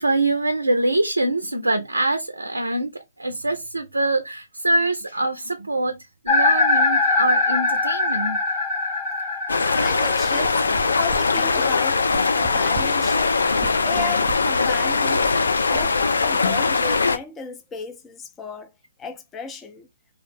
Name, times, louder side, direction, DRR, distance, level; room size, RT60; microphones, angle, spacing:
voice 1, 0.0-6.0 6.2-8.4, right 2 dB, 90° right, 0.4 m, -24 dB
sound 1, 6.3-14.3, left 3 dB, 40° left, 0.8 m, -24 dB
sound 2, 9.5-17.2, left 4 dB, 75° left, 0.4 m, -21 dB
voice 2, 9.8-10.6 10.9-12.0 12.3-13.4 13.8-15.3 15.7-18.7 19.0-19.9, left 4 dB, 15° left, 0.5 m, -35 dB
sound 3, 9.8-16.4, right 5 dB, 35° right, 0.5 m, -39 dB
2.3 x 2.0 x 3.2 m
figure-of-eight pair, 125°, 0 cm